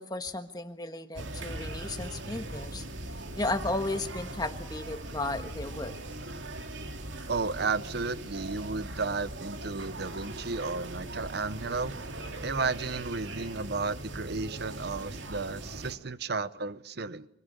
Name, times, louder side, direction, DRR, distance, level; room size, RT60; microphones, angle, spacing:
voice 1, 0.0-2.8 3.4-5.9, left 2 dB, 20° left, 7 dB, 1.5 m, -34 dB
sound 1, 1.2-16.0, right 1 dB, 75° right, 2.4 m, -40 dB
voice 2, 7.3-12.0 12.4-17.3, right 4 dB, 55° right, 15 dB, 0.8 m, -33 dB
26.0 x 18.0 x 8.4 m, 0.77 s
head